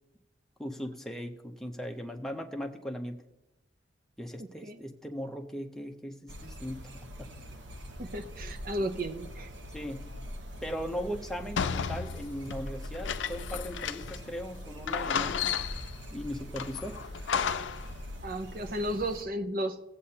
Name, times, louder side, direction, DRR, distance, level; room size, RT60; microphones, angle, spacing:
voice 1, 0.6-3.2 4.2-6.9 7.2-7.3 9.7-10.1 10.6-15.5 16.1-17.0, equal, 5° left, 2 dB, 0.6 m, -38 dB
voice 2, 4.4-4.8 8.0-9.5 18.2-19.8, right 1 dB, 50° right, 8 dB, 0.6 m, -34 dB
sound 1, 6.3-19.3, equal, 85° right, 1.2 m, -43 dB
sound 2, 11.6-14.3 14.5-14.6 14.9-16.0 16.6-17.9, left 7 dB, 85° left, 0.4 m, -33 dB
17.0 x 7.6 x 2.8 m, 0.91 s
head